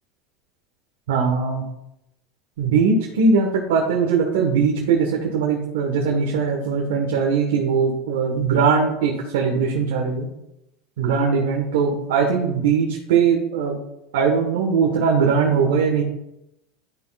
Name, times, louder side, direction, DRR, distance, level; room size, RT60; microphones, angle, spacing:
voice 1, 1.1-1.6 2.6-10.3 11.0-13.8 14.1-16.0, right 5 dB, 85° right, -2 dB, 1.4 m, -20 dB
11.5 x 5.8 x 2.5 m, 0.87 s
supercardioid pair, 115°, 0 cm